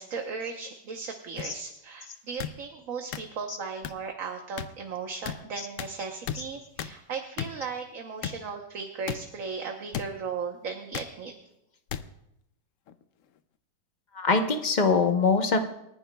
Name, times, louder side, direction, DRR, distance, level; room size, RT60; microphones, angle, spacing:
voice 1, 0.0-11.3, right 5 dB, 55° right, 3 dB, 1.3 m, -36 dB
sound 1, 1.4-1.5 2.4-2.5 3.1-3.2 3.8-3.9 4.6-4.7 5.3-5.4 5.8-5.9 6.3-6.4 6.8-6.9 7.4-7.5 8.2-8.4 9.1-9.2 9.9-10.1 10.9-11.1 11.9-12.0 12.9-13.0, left 9 dB, 70° left, 0.7 m, -33 dB
voice 2, 14.1-15.6, left 4 dB, 35° left, 5 dB, 0.8 m, -24 dB
28.0 x 10.5 x 2.3 m, 0.84 s
omnidirectional pair, 1.9 m